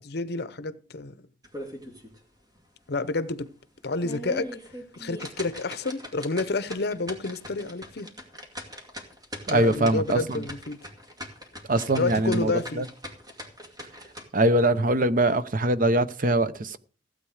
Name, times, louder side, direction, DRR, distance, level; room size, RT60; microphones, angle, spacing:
voice 1, 0.1-1.2 2.9-3.5 3.8-4.5 5.0-8.1 9.5-10.8 12.0-12.9, left 3 dB, 60° left, 0.8 m, -29 dB
sound 1, 1.4-2.2 2.6-2.7 3.2-3.3 3.8-14.2, equal, 20° right, 2.3 m, -41 dB
voice 2, 9.5-10.4 11.7-12.9 14.3-16.8, right 1 dB, 50° right, 0.7 m, -23 dB
16.0 x 8.3 x 4.9 m
head